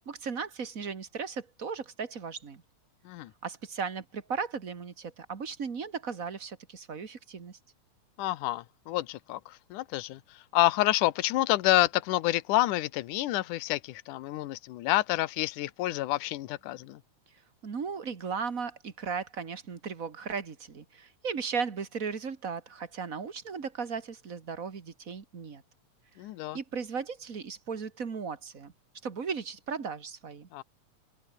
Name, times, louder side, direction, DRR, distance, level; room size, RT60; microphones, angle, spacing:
voice 1, 0.0-2.6 3.4-7.6 17.6-25.6 26.5-28.7 29.0-30.5, right 5 dB, 35° right, 1.5 m, -36 dB
voice 2, 8.2-17.0 26.2-26.6 30.5-30.6, left 17 dB, 75° left, 2.4 m, -28 dB
omnidirectional pair, 3.8 m